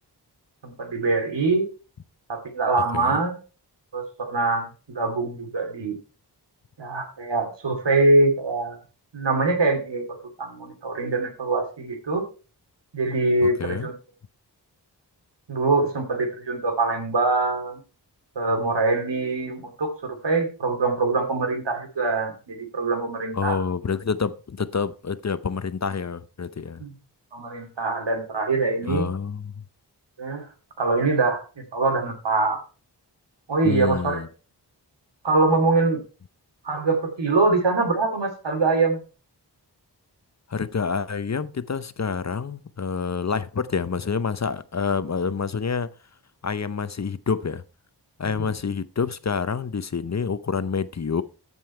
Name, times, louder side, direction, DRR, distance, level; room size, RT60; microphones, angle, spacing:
voice 1, 0.6-1.7 2.3-3.4 3.9-6.0 6.8-8.8 9.1-12.2 12.9-13.9 15.5-17.8 18.4-23.6 26.8-26.9 27.3-29.1 30.2-30.5 30.8-32.6 33.5-34.2 35.2-36.0 36.6-39.0 48.4-48.5, right 3 dB, 90° right, 2.6 m, -23 dB
voice 2, 2.9-3.3 13.4-13.9 23.3-26.8 28.9-29.6 33.6-34.3 40.5-45.9 46.4-47.6 48.2-51.2, left 5 dB, 40° left, 0.7 m, -27 dB
14.0 x 5.4 x 4.4 m
wide cardioid pair, 55°, 42 cm